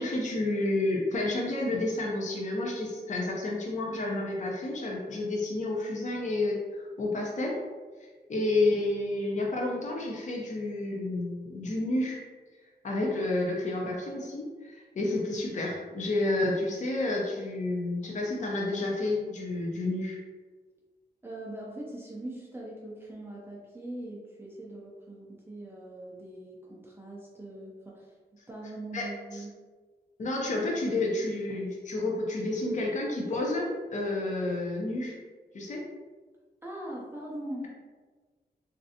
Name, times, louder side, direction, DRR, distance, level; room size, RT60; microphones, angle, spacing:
voice 1, 0.0-7.6 8.0-12.2 12.8-20.2 28.9-29.1 29.3-29.4 30.2-35.2 35.5-35.8, left 2 dB, 45° left, -2 dB, 0.5 m, -30 dB
voice 2, 21.2-28.1 28.5-29.5 36.6-37.7, right 1 dB, 15° right, -5 dB, 0.4 m, -41 dB
3.2 x 2.5 x 2.6 m, 1.4 s
wide cardioid pair, 130°, 18 cm